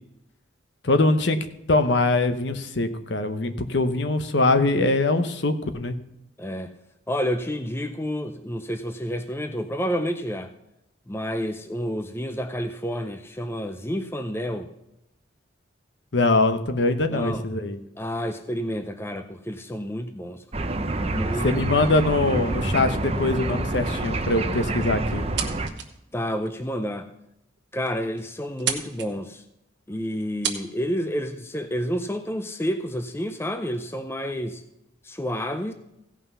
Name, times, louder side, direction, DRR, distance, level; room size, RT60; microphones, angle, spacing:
voice 1, 0.8-1.4 1.7-6.0 16.1-17.8 21.4-25.3, left 2 dB, 60° left, 0.9 m, -22 dB
voice 2, 6.4-6.7 7.1-10.5 11.1-14.7 17.1-17.4 18.0-20.4 21.0-21.5 26.1-27.1 27.7-29.4 29.9-34.6 35.0-35.7, equal, 10° left, 0.5 m, -29 dB
sound 1, 20.5-25.7, right 2 dB, 30° right, 0.7 m, -27 dB
sound 2, 25.1-26.0 26.4-26.5 27.2-27.3 27.6-27.7 27.9-28.2 28.5-29.1 30.0-30.1 30.4-30.6, right 8 dB, 60° right, 1.3 m, -30 dB
16.5 x 5.7 x 5.5 m
head